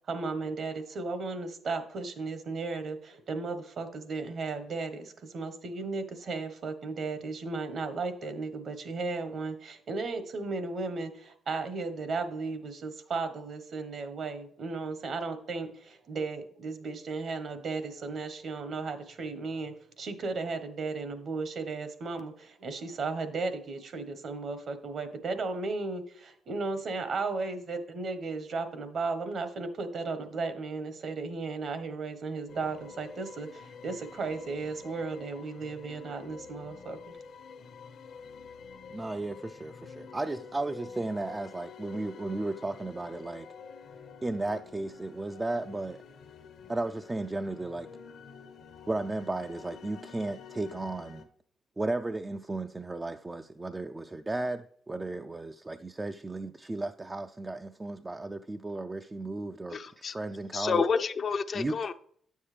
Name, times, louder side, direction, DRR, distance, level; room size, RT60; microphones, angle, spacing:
voice 1, 0.1-37.0, right 3 dB, 55° right, 1.1 m, -35 dB
sound 1, 32.5-51.2, left 6 dB, 70° left, 0.9 m, -48 dB
voice 2, 38.9-43.5 44.2-46.0 46.7-47.9 48.9-51.3 51.8-60.8 61.5-61.7, right 2 dB, 20° right, 0.3 m, -34 dB
voice 3, 59.7-60.2 60.5-61.9, left 5 dB, 45° left, 0.5 m, -29 dB
9.4 x 7.2 x 3.3 m
cardioid pair, 90°, 0 cm